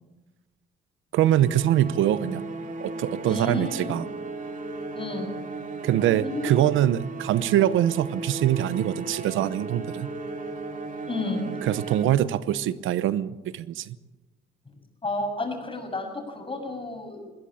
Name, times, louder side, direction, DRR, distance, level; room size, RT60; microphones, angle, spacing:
voice 1, 1.1-2.4 2.8-4.1 5.8-10.1 11.6-13.9, right 12 dB, 85° right, 16 dB, 0.9 m, -23 dB
sound 1, 1.2-12.6, right 3 dB, 40° right, 2.7 m, -36 dB
voice 2, 3.2-4.0 5.0-5.4 6.2-6.5 11.1-11.6 15.0-17.2, left 2 dB, 25° left, 4 dB, 7.2 m, -31 dB
21.5 x 17.0 x 8.7 m, 1.1 s
cardioid pair, 90°, 20 cm